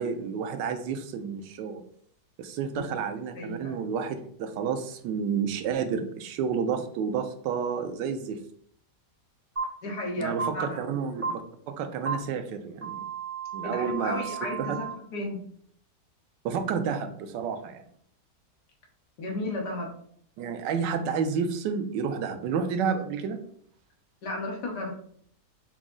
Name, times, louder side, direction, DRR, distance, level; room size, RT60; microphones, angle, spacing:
voice 1, 0.0-1.8 2.4-8.4 10.2-11.4 11.7-13.0 13.5-14.2 14.6-14.8 16.4-17.8 20.4-23.4, right 6 dB, 85° right, 8 dB, 1.2 m, -30 dB
voice 2, 3.3-3.8 9.8-10.8 13.6-15.4 19.2-20.0 24.2-24.9, left 1 dB, 70° left, 0 dB, 1.6 m, -33 dB
sound 1, 9.6-9.7 10.4-10.5 11.2-11.3 12.1-12.2 12.8-14.9, right 6 dB, 30° right, 0.7 m, -33 dB
5.8 x 2.0 x 3.7 m, 0.62 s
omnidirectional pair, 1.9 m